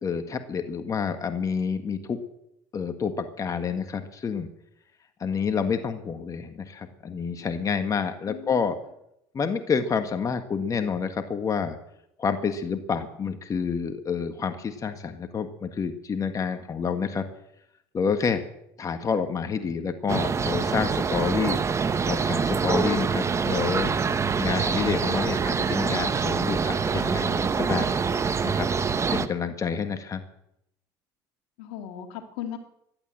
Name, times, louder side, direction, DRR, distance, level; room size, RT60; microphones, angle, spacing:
voice 1, 0.0-2.2 2.7-4.5 5.2-8.8 9.3-11.8 12.2-17.2 17.9-18.4 18.8-24.0 24.4-28.0 28.4-28.7 29.1-30.2, left 6 dB, 35° left, 7 dB, 1.6 m, -28 dB
voice 2, 8.3-8.6 22.8-23.1 31.6-32.6, left 10 dB, 75° left, 5 dB, 2.3 m, -36 dB
sound 1, 20.1-29.3, right 5 dB, 30° right, 1.0 m, -25 dB
15.5 x 11.0 x 7.8 m, 0.80 s
supercardioid pair, 85°, 10 cm